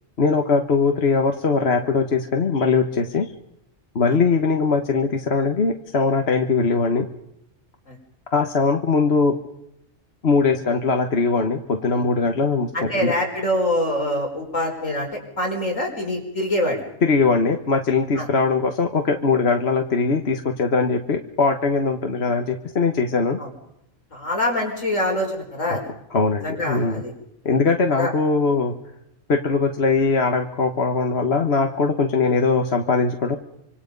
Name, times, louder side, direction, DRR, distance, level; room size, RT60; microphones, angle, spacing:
voice 1, 0.2-3.3 3.9-7.1 8.3-9.3 10.2-13.1 17.0-23.4 25.7-25.8 26.1-27.0 27.4-28.7 29.3-33.4, left 4 dB, 55° left, 4 dB, 1.6 m, -21 dB
voice 2, 12.7-15.1 15.4-16.8 18.2-18.3 23.4-23.5 24.1-25.8 26.4-27.1 28.0-28.1, left 1 dB, 80° left, 1 dB, 5.2 m, -24 dB
26.0 x 26.0 x 5.4 m, 0.79 s
omnidirectional pair, 1.3 m